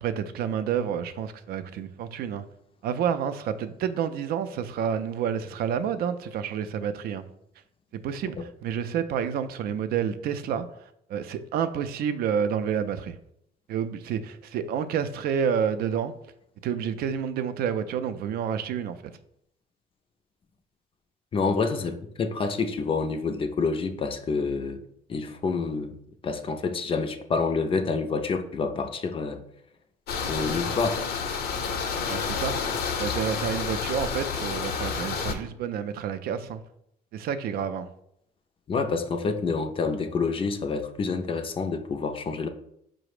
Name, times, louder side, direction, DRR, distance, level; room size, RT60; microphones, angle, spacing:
voice 1, 0.0-2.4 2.8-7.2 7.9-10.7 11.1-13.2 13.7-16.1 16.6-19.1 32.1-32.5 33.0-36.6 37.1-37.9, right 8 dB, 65° right, 11 dB, 0.4 m, -29 dB
voice 2, 21.3-24.8 25.1-25.9 26.2-29.4 30.3-31.0 38.7-42.5, left 4 dB, 30° left, 7 dB, 0.4 m, -28 dB
sound 1, 30.1-35.3, left 5 dB, 70° left, 0.7 m, -29 dB
4.9 x 2.0 x 4.7 m, 0.74 s
cardioid pair, 110°, 17 cm